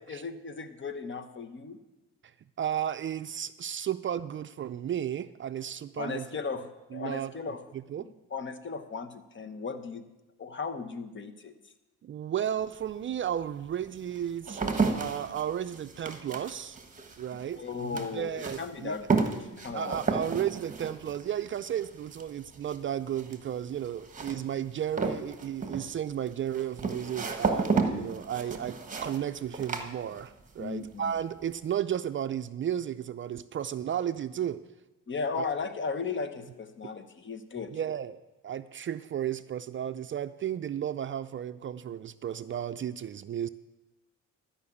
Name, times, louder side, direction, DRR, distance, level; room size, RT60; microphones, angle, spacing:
voice 1, 0.0-1.8 6.0-7.6 8.0-10.1 10.4-11.5 17.5-20.0 30.6-31.1 35.1-37.7, left 5 dB, 40° left, 10 dB, 1.1 m, -36 dB
voice 2, 2.6-6.3 6.9-7.3 7.7-8.1 12.0-16.8 17.2-19.1 19.7-34.6 35.3-35.5 37.7-43.5, right 10 dB, 40° right, 12 dB, 0.4 m, -33 dB
sound 1, 12.6-12.7 13.4-30.6 30.9-31.4, right 4 dB, 25° right, 1.4 m, -33 dB
12.5 x 5.7 x 8.4 m, 1.1 s
cardioid pair, 90°, 30 cm